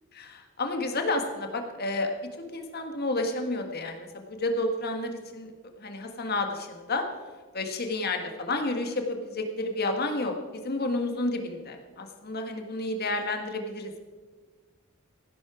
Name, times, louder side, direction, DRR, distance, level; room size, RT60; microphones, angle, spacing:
voice 1, 0.2-2.1 2.5-5.5 5.8-7.0 7.5-13.9, left 2 dB, 50° left, 5 dB, 1.7 m, -30 dB
16.0 x 11.0 x 5.0 m, 1.4 s
head